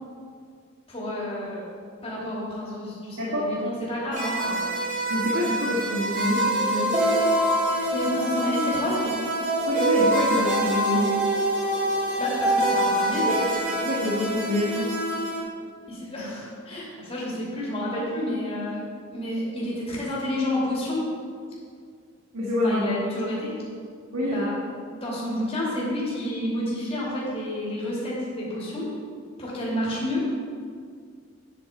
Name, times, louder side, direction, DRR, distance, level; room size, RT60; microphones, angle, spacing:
voice 1, 0.9-1.7 2.0-4.6 7.9-9.1 12.2-13.5 15.9-18.8 19.1-21.1 22.6-23.5 24.2-24.5 24.9-28.9 29.4-30.3, left 1 dB, 30° left, -6 dB, 2.6 m, -30 dB
voice 2, 3.2-3.5 5.1-7.2 9.6-11.1 13.8-15.0 22.3-22.8 24.1-24.4, left 1 dB, 80° right, -5 dB, 1.5 m, -26 dB
sound 1, 4.1-15.4, right 1 dB, 40° right, 2.7 m, -25 dB
8.8 x 8.4 x 4.3 m, 2.1 s
head